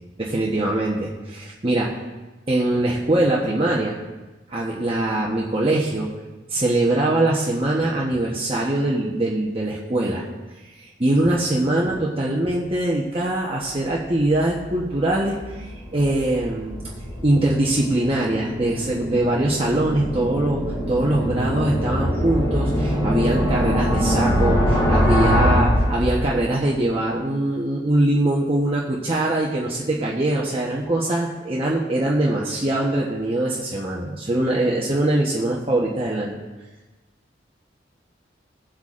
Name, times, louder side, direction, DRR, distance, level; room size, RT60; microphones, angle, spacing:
voice 1, 0.2-2.0 2.5-4.0 4.5-6.1 6.5-10.2 10.8-16.8 17.2-36.4, right 1 dB, 30° right, -4 dB, 1.0 m, -22 dB
sound 1, 13.9-26.6, equal, 25° left, 2.8 m, -24 dB
17.5 x 8.0 x 2.5 m, 1.2 s
head